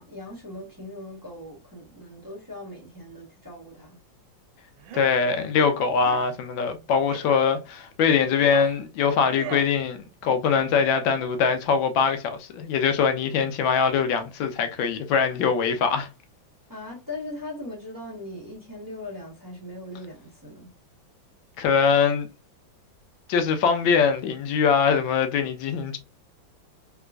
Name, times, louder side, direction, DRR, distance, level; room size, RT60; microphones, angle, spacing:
voice 1, 0.0-4.0 16.7-20.7, left 1 dB, 15° right, 0.8 m, -39 dB
sound 1, 4.8-5.2 6.0-6.3 7.1-7.3 8.1-8.8 9.3-9.7, right 10 dB, 80° right, 1.3 m, -38 dB
voice 2, 4.9-16.1 21.6-22.3 23.3-26.0, left 6 dB, 80° left, 1.4 m, -22 dB
3.4 x 2.9 x 2.3 m
omnidirectional pair, 2.1 m